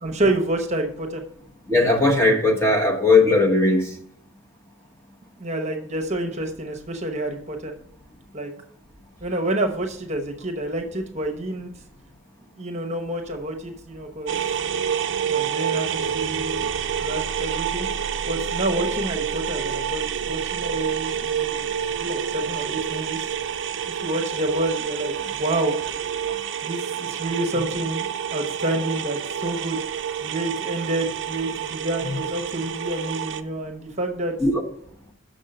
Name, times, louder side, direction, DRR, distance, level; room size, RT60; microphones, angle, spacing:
voice 1, 0.0-1.2 5.4-7.7 8.3-8.5 9.2-11.7 12.6-14.4 15.2-16.7 17.0-17.9 18.3-23.3 23.9-25.8 26.6-29.8 30.2-34.3, right 1 dB, 30° right, 0.9 m, -28 dB
voice 2, 1.7-4.0 26.3-26.4 34.4-34.6, left 2 dB, 15° left, 1.0 m, -18 dB
sound 1, 14.3-33.4, right 8 dB, 55° right, 0.4 m, -28 dB
6.4 x 5.4 x 6.5 m
head